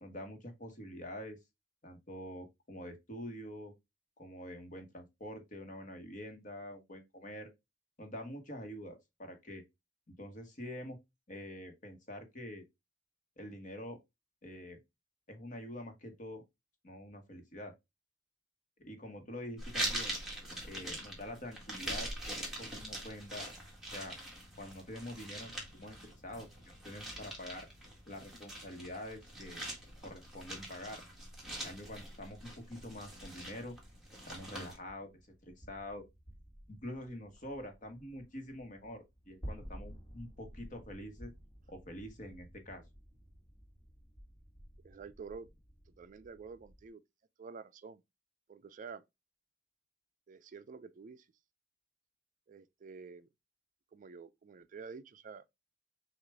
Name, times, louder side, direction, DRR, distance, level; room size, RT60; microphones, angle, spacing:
voice 1, 0.0-1.4 1.8-3.7 4.2-7.5 8.0-9.6 10.1-11.0 11.3-12.6 13.4-14.0 14.4-14.8 15.3-16.4 16.8-17.7 18.8-20.2 20.6-23.5 23.9-24.2 24.6-27.7 28.1-29.6 30.0-31.0 31.6-33.8 34.2-35.1 35.4-36.1 36.7-41.3 41.7-42.8, left 1 dB, 45° left, 1.2 m, -46 dB
sound 1, 19.6-34.8, right 1 dB, ahead, 1.7 m, -43 dB
sound 2, 33.7-46.9, equal, 25° left, 1.5 m, -54 dB
voice 2, 44.8-45.5 46.0-47.0 47.4-48.0 48.5-49.0 50.3-51.3 52.5-53.3 53.9-55.4, right 5 dB, 45° right, 0.3 m, -49 dB
6.4 x 2.4 x 3.3 m
head